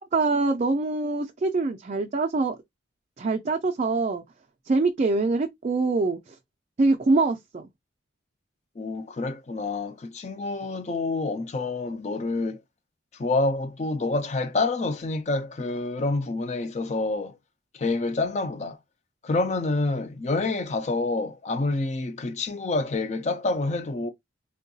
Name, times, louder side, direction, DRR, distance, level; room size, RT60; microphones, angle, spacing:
voice 1, 0.1-2.6 3.2-4.2 4.7-6.3 6.8-7.7, right 3 dB, 35° right, 0.3 m, -24 dB
voice 2, 8.8-12.6 13.1-17.4 17.7-18.8 19.2-24.1, left 3 dB, 35° left, 0.4 m, -27 dB
3.7 x 2.2 x 2.6 m
head